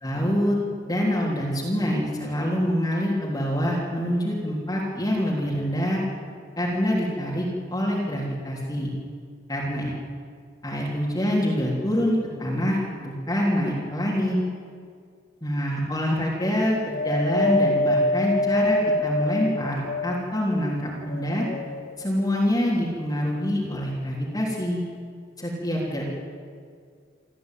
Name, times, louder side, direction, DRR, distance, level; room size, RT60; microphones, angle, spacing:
voice 1, 0.0-0.6 0.9-6.0 6.6-7.5 7.7-8.9 9.5-9.9 10.6-14.4 15.4-21.5 22.0-24.8 25.4-26.0, equal, 20° left, -5 dB, 3.6 m, -25 dB
Wind, 16.9-20.4 21.0-22.0 22.8-22.9, left 1 dB, 50° left, 1.3 m, -25 dB
28.5 x 14.0 x 9.3 m, 2.1 s
head